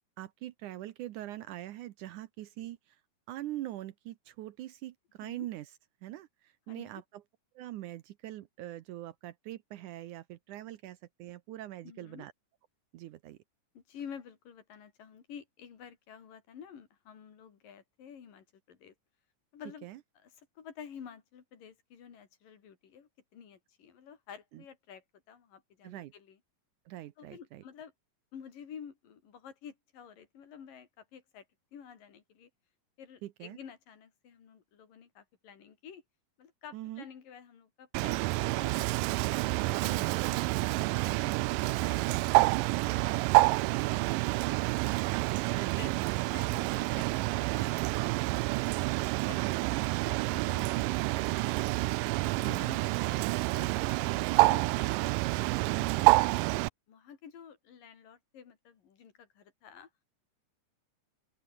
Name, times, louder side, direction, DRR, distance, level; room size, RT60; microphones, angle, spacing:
voice 1, 0.2-3.0 3.3-5.7 6.0-7.2 7.6-12.3 12.9-13.4 19.8-20.0 24.5-24.6 25.8-26.1 26.9-27.6 33.2-33.6 36.7-37.1 39.8-40.1 45.5-45.8 49.3-49.7 52.4-52.6 55.7-56.1, right 14 dB, 75° right, 2.2 m, -43 dB
voice 2, 6.7-7.0 11.8-12.3 13.7-18.9 19.5-19.9 20.2-26.4 27.2-27.9 28.3-31.5 31.7-32.5 33.0-36.0 36.4-39.1 39.6-44.8 45.3-48.7 49.3-51.6 52.0-55.1 55.6-55.8 56.9-59.9, left 7 dB, 85° left, 4.7 m, -51 dB
Bird, 37.9-56.7, right 22 dB, 90° right, 2.2 m, -28 dB
open air
omnidirectional pair, 3.8 m